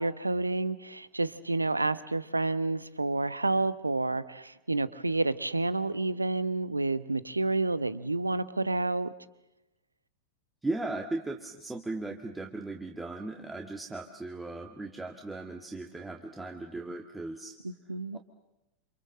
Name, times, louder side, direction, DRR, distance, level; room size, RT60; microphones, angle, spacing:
voice 1, 0.0-9.1 17.6-18.2, right 2 dB, 80° right, 17 dB, 1.0 m, -29 dB
voice 2, 10.6-17.6 18.1-18.2, right 2 dB, 10° right, 3 dB, 1.8 m, -37 dB
28.5 x 27.0 x 7.6 m, 0.94 s
figure-of-eight pair, 90°, 0 cm